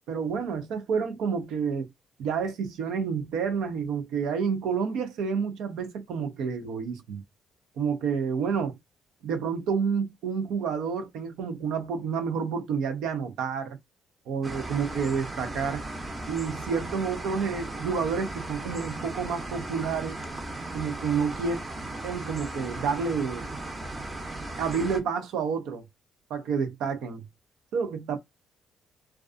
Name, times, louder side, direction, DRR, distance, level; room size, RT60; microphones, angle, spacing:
voice 1, 0.1-1.9 2.2-7.2 7.8-8.8 9.2-13.8 14.3-15.9 16.3-20.2 20.7-21.6 22.0-23.4 24.6-25.8 26.3-27.3 27.7-28.2, right 6 dB, 85° right, 0.5 m, -29 dB
sound 1, 14.4-25.0, right 2 dB, 25° right, 0.7 m, -37 dB
2.4 x 2.3 x 2.4 m
cardioid pair, 90°, 0 cm